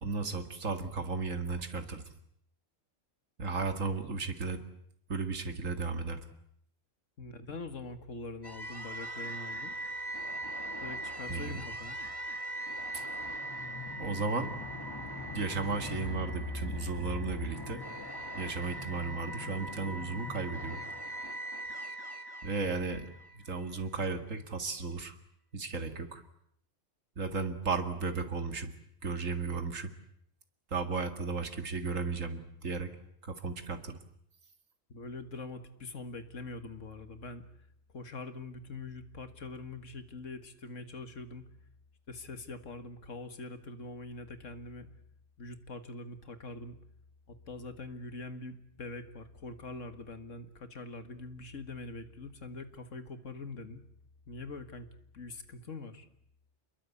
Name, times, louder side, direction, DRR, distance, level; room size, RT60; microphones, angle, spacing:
voice 1, 0.0-2.0 3.4-4.6 5.1-6.2 11.3-11.6 12.9-13.1 14.0-14.6 15.3-17.8 18.3-20.8 22.4-23.1 23.5-25.1 25.5-26.2 27.2-28.7 29.0-29.9 30.7-32.9 33.2-34.0, right 4 dB, 90° right, 8 dB, 2.4 m, -34 dB
voice 2, 7.2-9.7 10.8-12.0 34.9-37.4 37.9-41.4 42.1-44.9 45.4-46.8 47.3-53.8 54.3-54.9 55.1-56.1, left 3 dB, 75° left, 10 dB, 2.1 m, -43 dB
sound 1, 8.4-23.6, equal, 20° left, 1.6 m, -40 dB
28.5 x 21.5 x 8.5 m, 0.70 s
omnidirectional pair, 1.3 m